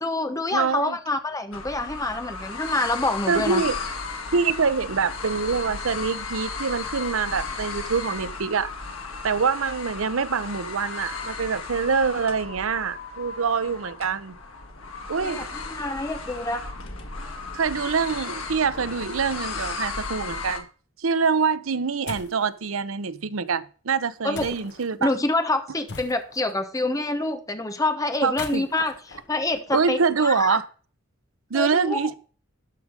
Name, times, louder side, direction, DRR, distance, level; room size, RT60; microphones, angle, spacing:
voice 1, 0.0-3.6 15.2-16.6 24.2-24.6 25.0-30.6 31.5-32.1, left 2 dB, 15° left, 1.0 m, -27 dB
voice 2, 0.5-1.0 3.3-3.8 4.3-8.7 9.2-14.3 15.1-15.5 17.5-20.6 21.0-25.1 28.2-28.6 29.7-30.7 31.5-32.1, right 5 dB, 85° right, 0.7 m, -25 dB
sound 1, 1.5-20.6, left 4 dB, 90° left, 1.9 m, -35 dB
sound 2, 22.1-22.4 24.3-24.9 25.9-26.5 28.2-30.1, left 4 dB, 55° left, 1.3 m, -40 dB
12.5 x 4.9 x 5.2 m
head